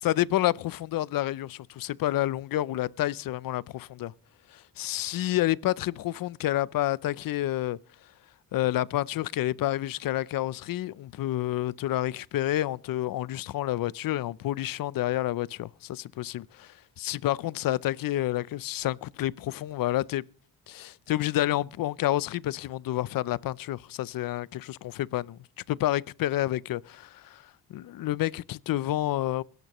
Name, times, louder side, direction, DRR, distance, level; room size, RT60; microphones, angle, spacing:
voice 1, 0.0-4.1 4.5-7.8 8.5-16.7 17.0-20.2 20.7-25.4 25.7-27.4 27.7-29.4, left 14 dB, 65° left, 0.5 m, -29 dB
23.5 x 12.0 x 3.0 m
cardioid pair, 140°, 37 cm